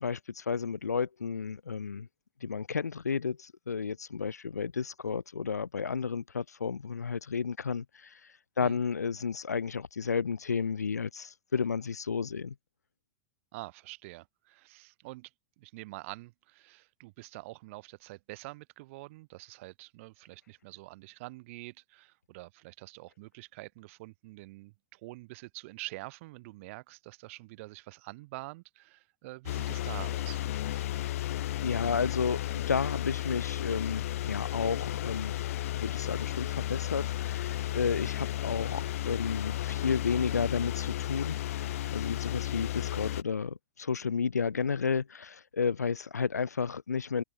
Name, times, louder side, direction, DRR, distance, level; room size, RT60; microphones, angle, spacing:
voice 1, 0.0-2.1 2.4-8.1 8.6-12.5 31.2-35.3 35.7-47.2, left 6 dB, 80° left, 0.8 m, -32 dB
voice 2, 13.5-15.3 15.6-30.4, right 22 dB, 55° right, 7.3 m, -46 dB
sound 1, 29.5-43.2, left 14 dB, 60° left, 1.9 m, -33 dB
figure-of-eight pair, 90°, 9 cm